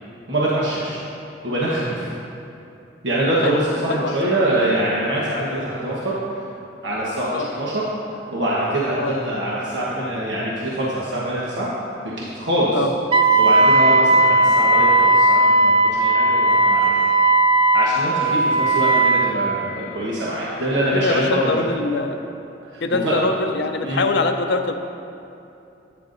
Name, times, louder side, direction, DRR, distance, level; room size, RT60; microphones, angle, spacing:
voice 1, 0.3-1.0 1.4-2.1 3.0-6.2 6.8-7.8 8.3-11.7 12.2-12.8 13.4-17.0 17.7-21.6 22.7-23.2 23.8-24.0, right 1 dB, 75° right, -7 dB, 1.2 m, -24 dB
Wind instrument woodwind instrument, 13.1-19.4, right 2 dB, 30° right, 0.4 m, -16 dB
voice 2, 20.9-22.2 22.8-24.7, left 3 dB, 60° left, 7 dB, 0.5 m, -23 dB
11.5 x 8.9 x 2.6 m, 2.7 s
head